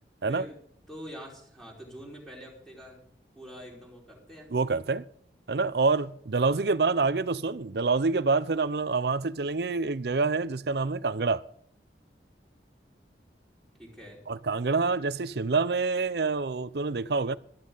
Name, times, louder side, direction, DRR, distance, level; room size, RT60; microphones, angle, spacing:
voice 1, 0.3-0.6 0.9-3.0 3.3-4.5 6.4-6.6 13.8-14.2, equal, ahead, 4.6 m, -45 dB
voice 2, 4.5-5.0 5.5-11.4 14.3-17.4, right 4 dB, 65° right, 0.6 m, -27 dB
14.0 x 13.5 x 4.0 m
head